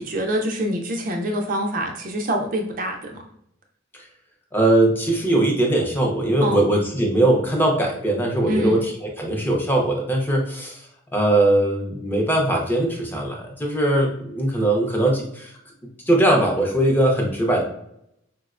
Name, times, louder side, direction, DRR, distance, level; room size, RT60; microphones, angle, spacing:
voice 1, 0.0-3.2 6.4-6.6 8.5-8.7, equal, 40° right, 2 dB, 0.4 m, -25 dB
voice 2, 4.5-10.9 11.1-15.5 16.1-17.6, right 1 dB, 10° left, -1 dB, 0.5 m, -20 dB
4.1 x 2.0 x 2.4 m, 0.75 s
head